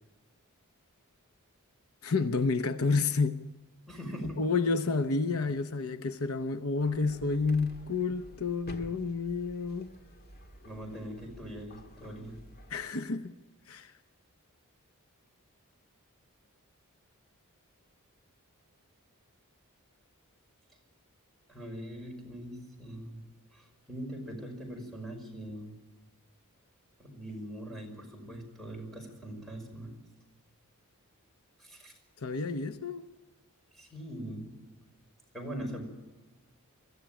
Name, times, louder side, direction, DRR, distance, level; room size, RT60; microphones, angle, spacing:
voice 1, 2.0-3.4 4.4-9.9 12.7-13.3 13.7-13.9 32.2-33.1, left 4 dB, 70° left, 0.9 m, -30 dB
voice 2, 3.9-4.4 10.6-12.4 21.5-23.2 23.5-25.7 27.0-30.0 31.6-31.9 33.7-34.5 35.3-35.8, equal, ahead, 5.6 m, -42 dB
sound 1, 6.8-12.8, left 1 dB, 45° left, 1.8 m, -50 dB
23.5 x 14.5 x 9.0 m
head